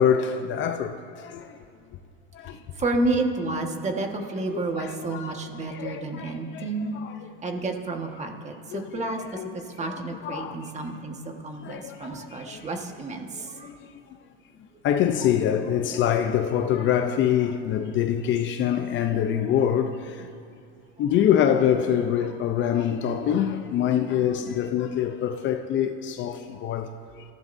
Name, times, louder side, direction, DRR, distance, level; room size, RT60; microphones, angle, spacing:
voice 1, 0.0-1.6 2.3-2.6 4.5-7.3 8.7-10.7 11.6-12.7 13.4-14.2 14.8-20.3 21.0-27.2, left 9 dB, 40° left, 0.7 m, -26 dB
voice 2, 2.8-6.9 7.4-9.4 9.8-11.1 11.4-13.7, right 2 dB, 25° right, 1.6 m, -30 dB
26.5 x 14.5 x 2.7 m
supercardioid pair, 135°, 29 cm